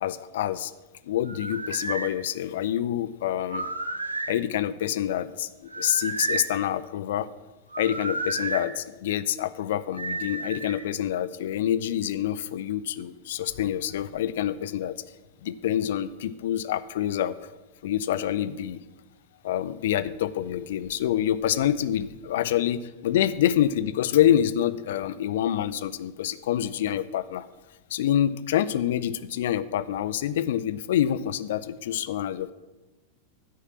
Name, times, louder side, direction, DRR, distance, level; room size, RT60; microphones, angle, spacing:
voice 1, 0.0-0.7 1.1-3.7 4.3-5.5 5.8-7.3 7.8-15.0 15.4-17.4 17.8-18.8 19.4-27.5 27.9-32.5, left 11 dB, 55° left, 16 dB, 0.4 m, -26 dB
sound 1, 1.3-2.1 3.4-4.4 5.7-6.5 7.7-8.6 10.0-10.8, right 3 dB, 80° right, 0.7 m, -31 dB
9.3 x 6.5 x 7.4 m, 1.1 s
figure-of-eight pair, 90°, 0 cm